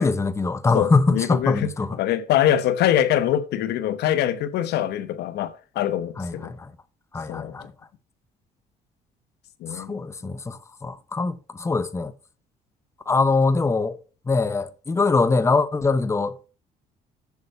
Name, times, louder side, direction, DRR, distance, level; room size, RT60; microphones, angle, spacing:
voice 1, 0.0-2.0 6.2-6.7 7.1-7.7 9.7-12.1 13.1-14.0 14.3-16.5, left 3 dB, 15° left, 0.8 m, -23 dB
voice 2, 0.7-1.7 2.0-6.5 7.3-7.5 9.6-10.1, left 11 dB, 75° left, 1.0 m, -24 dB
7.2 x 6.5 x 6.5 m
cardioid pair, 110°, 17 cm